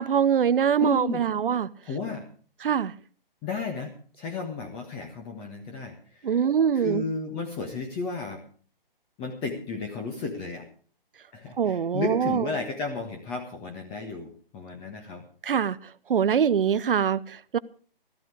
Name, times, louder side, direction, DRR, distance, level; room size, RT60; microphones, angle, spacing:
voice 1, 0.0-1.7 2.6-2.9 6.2-7.0 11.6-12.5 15.4-15.8 16.1-17.6, right 8 dB, 65° right, 0.8 m, -23 dB
voice 2, 0.8-1.2 1.9-2.3 3.4-6.4 6.7-8.4 9.2-10.6 11.3-15.2, left 4 dB, 20° left, 1.4 m, -33 dB
14.5 x 13.5 x 4.9 m
figure-of-eight pair, 140°, 29 cm